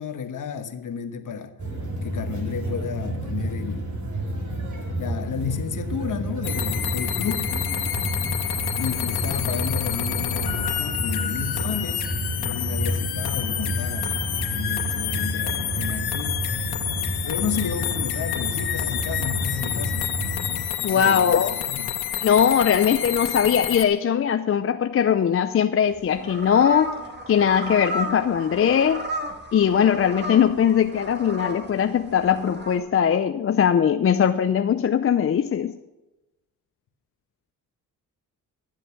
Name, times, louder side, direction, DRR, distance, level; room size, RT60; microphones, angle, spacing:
voice 1, 0.0-1.5 2.0-3.9 5.0-7.5 8.8-12.1 12.4-16.4 17.2-20.1 20.8-22.0, left 7 dB, 55° left, 1.2 m, -32 dB
sound 1, 1.6-20.6, right 1 dB, 50° right, 2.8 m, -30 dB
sound 2, 6.4-23.8, left 11 dB, 80° left, 1.0 m, -29 dB
voice 2, 20.8-21.6 22.2-26.9 27.3-29.0 29.5-35.7, left 8 dB, 40° left, 0.5 m, -20 dB
sound 3, 25.9-32.8, right 1 dB, 30° right, 1.6 m, -34 dB
12.0 x 7.7 x 5.9 m
cardioid pair, 85°, 37 cm